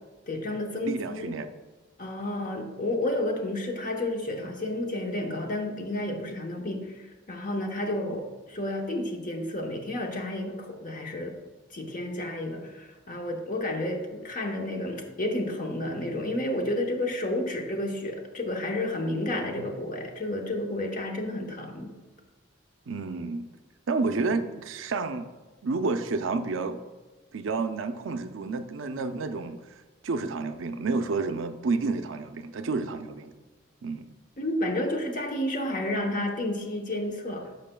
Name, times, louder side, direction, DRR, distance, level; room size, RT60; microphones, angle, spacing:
voice 1, 0.3-1.3 2.0-11.4 11.7-21.9 34.4-37.5, left 1 dB, 45° left, 3 dB, 1.0 m, -31 dB
voice 2, 0.8-1.5 22.9-23.5 23.9-25.3 25.6-26.8 27.3-29.6 30.0-33.3 33.8-34.1, right 3 dB, 80° right, 8 dB, 0.5 m, -30 dB
10.5 x 6.4 x 2.3 m, 1.2 s
head